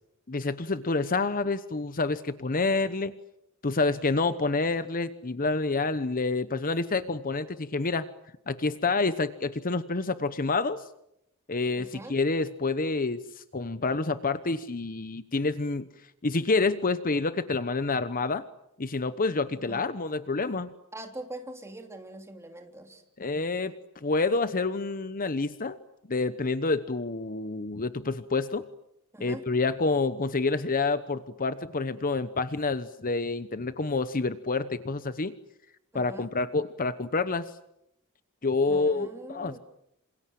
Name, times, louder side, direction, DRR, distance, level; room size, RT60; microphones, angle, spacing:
voice 1, 0.3-3.1 3.6-8.1 8.5-10.8 11.5-15.9 16.2-18.4 18.8-20.7 23.2-23.7 24.0-25.8 26.1-28.6 29.2-35.3 35.9-37.5 38.4-39.6, left 3 dB, 40° left, 12 dB, 1.0 m, -28 dB
voice 2, 11.7-12.1 19.6-19.8 20.9-23.0 29.1-29.4 35.9-36.3 38.7-39.6, right 1 dB, 10° right, 4 dB, 3.3 m, -42 dB
28.0 x 27.0 x 7.7 m, 0.80 s
head